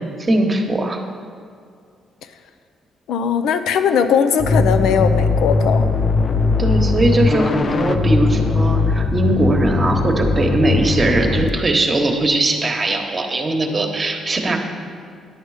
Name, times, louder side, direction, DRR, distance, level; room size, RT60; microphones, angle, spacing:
voice 1, 0.2-1.0 6.6-14.6, right 2 dB, 30° right, 3 dB, 1.2 m, -19 dB
voice 2, 3.1-5.9, left 7 dB, 80° left, 9 dB, 0.6 m, -19 dB
sound 1, 4.4-11.5, left 3 dB, 40° left, 0.6 m, -19 dB
10.5 x 8.1 x 4.9 m, 2.3 s
cardioid pair, 90°, 0 cm